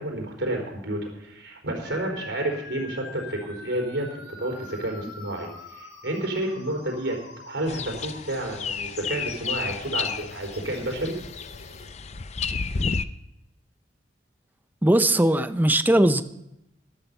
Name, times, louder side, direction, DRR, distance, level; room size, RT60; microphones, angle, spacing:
voice 1, 0.0-4.0 4.4-7.2 7.5-11.1, right 1 dB, 75° right, 4.3 m, -30 dB
sound 1, 1.8-11.8, left 3 dB, 80° left, 2.7 m, -45 dB
sound 2, 7.7-13.0, left 5 dB, 35° left, 0.5 m, -31 dB
voice 2, 14.8-16.2, right 1 dB, 10° right, 0.6 m, -19 dB
13.0 x 12.5 x 5.5 m
head